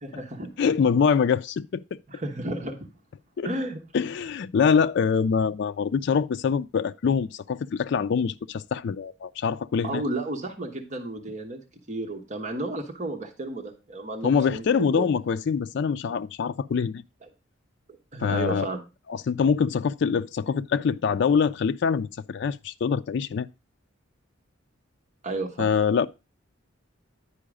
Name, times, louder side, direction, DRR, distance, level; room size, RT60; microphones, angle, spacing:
voice 1, 0.0-0.5 2.1-2.8 3.4-3.8 9.8-11.6 11.9-15.1 18.1-18.8 25.2-25.7, right 2 dB, 35° right, 1.1 m, -32 dB
voice 2, 0.6-1.8 3.4-3.5 3.9-10.0 14.2-17.0 18.2-18.7 19.1-23.5 25.6-26.1, left 6 dB, 60° left, 0.3 m, -24 dB
10.0 x 4.7 x 4.9 m
head